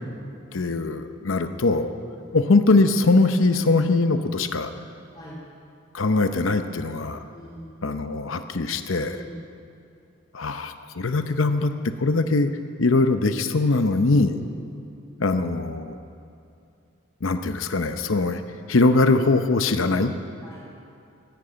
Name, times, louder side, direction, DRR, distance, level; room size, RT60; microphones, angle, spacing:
voice 1, 0.5-1.9 2.3-4.7 5.9-7.2 7.8-9.2 10.3-11.7 12.0-12.5 12.8-14.4 15.2-16.0 17.2-18.4 18.7-20.1, left 3 dB, 85° left, 8 dB, 0.7 m, -21 dB
voice 2, 2.2-2.8 5.1-5.5 7.3-7.8 9.1-9.3 14.3-14.5 14.9-15.0 20.4-20.8, equal, 20° left, -7 dB, 2.6 m, -44 dB
14.0 x 11.0 x 8.8 m, 2.6 s
head